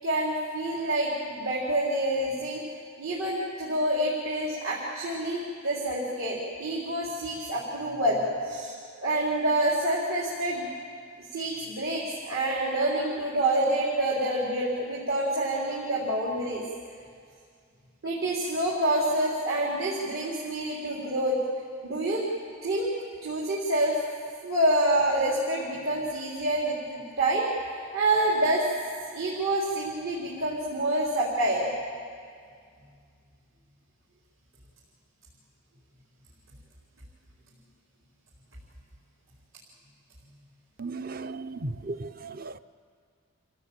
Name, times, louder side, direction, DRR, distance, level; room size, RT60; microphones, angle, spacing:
voice 1, 0.0-2.6 3.0-8.7 9.0-10.6 11.3-16.6 18.0-21.4 21.8-22.3 22.6-22.9 23.2-24.0 24.4-27.5 27.9-28.7 29.1-31.7, right 1 dB, 75° right, 4.1 m, -27 dB
voice 2, 40.8-42.6, right 3 dB, 45° right, 0.6 m, -36 dB
28.0 x 16.5 x 8.9 m
head